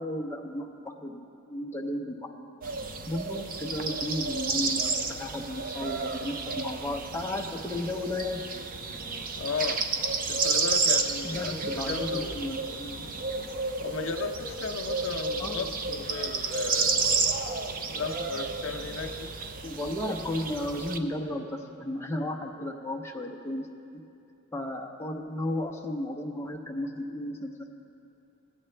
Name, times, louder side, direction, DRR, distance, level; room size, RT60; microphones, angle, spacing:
voice 1, 0.0-2.3 3.1-8.4 11.2-13.1 15.4-15.7 19.6-23.7 24.5-27.7, left 1 dB, 10° left, 0 dB, 0.7 m, -34 dB
sound 1, 2.6-21.0, right 4 dB, 40° right, 0.5 m, -31 dB
voice 2, 9.4-9.8 10.3-12.4 13.8-17.0 17.9-19.3, left 4 dB, 60° left, 3 dB, 0.6 m, -35 dB
18.5 x 8.6 x 3.3 m, 2.6 s
head